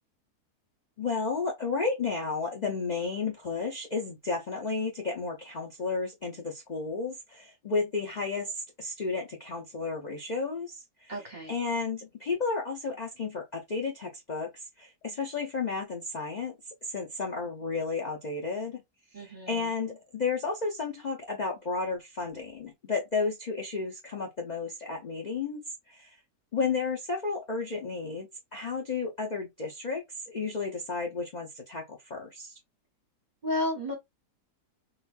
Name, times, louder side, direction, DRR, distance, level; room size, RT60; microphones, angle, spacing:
voice 1, 1.0-11.1 11.5-14.5 14.8-16.6 16.9-18.8 19.1-26.2 26.5-32.6, left 4 dB, 50° left, 0.5 m, -32 dB
voice 2, 11.1-11.6 19.1-19.7 33.4-33.9, left 1 dB, 35° right, 0.9 m, -32 dB
3.9 x 2.5 x 2.4 m
omnidirectional pair, 1.6 m